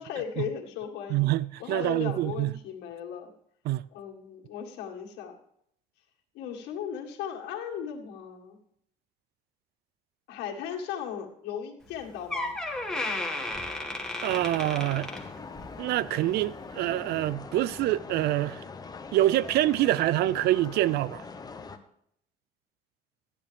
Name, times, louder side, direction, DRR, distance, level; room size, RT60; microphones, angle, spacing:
voice 1, 0.0-1.3 1.6-3.3 3.9-5.4 6.3-8.6 10.3-12.6, left 8 dB, 90° left, 2.0 m, -37 dB
voice 2, 1.1-2.5 3.7-3.8 14.2-15.1 15.8-18.6 19.1-21.2, right 15 dB, 70° right, 0.4 m, -26 dB
Door, 11.8-12.0 12.3-15.8 16.1-16.4 17.2-17.3, left 2 dB, 5° left, 1.9 m, -34 dB
sound 1, 14.3-21.8, left 4 dB, 25° left, 1.0 m, -42 dB
14.5 x 10.0 x 3.5 m
cardioid pair, 110°, 17 cm